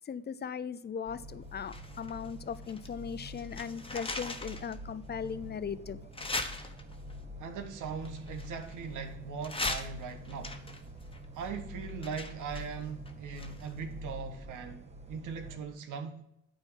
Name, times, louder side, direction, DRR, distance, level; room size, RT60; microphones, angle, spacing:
voice 1, 0.1-6.0, left 7 dB, 35° left, 0.6 m, -38 dB
sound 1, 1.1-15.6, equal, 20° right, 1.2 m, -46 dB
sound 2, 1.7-2.9 3.2-4.8 5.2-5.3 6.1-7.1 8.0-9.0 9.4-13.8 14.1-14.2, left 2 dB, 20° left, 1.1 m, -39 dB
voice 2, 7.4-10.6 11.3-16.2, right 6 dB, 85° right, 1.3 m, -40 dB
9.0 x 4.4 x 7.3 m
cardioid pair, 90°, 30 cm